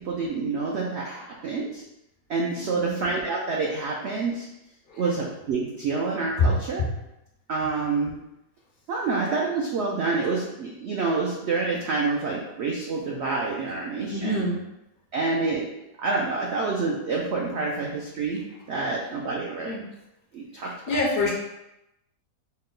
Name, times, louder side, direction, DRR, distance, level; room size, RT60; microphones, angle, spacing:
voice 1, 0.1-1.8 2.3-4.5 4.9-6.8 7.5-8.1 8.9-14.4 15.1-15.6 16.0-18.4 18.7-19.7 20.3-20.7, right 4 dB, 90° right, -2 dB, 0.5 m, -27 dB
voice 2, 2.6-2.9 4.9-5.0 6.4-6.5 6.8-6.9 14.1-14.6 19.6-19.8 20.6-21.3, left 2 dB, 75° left, -2 dB, 0.5 m, -26 dB
4.3 x 2.1 x 3.7 m, 0.90 s
omnidirectional pair, 1.8 m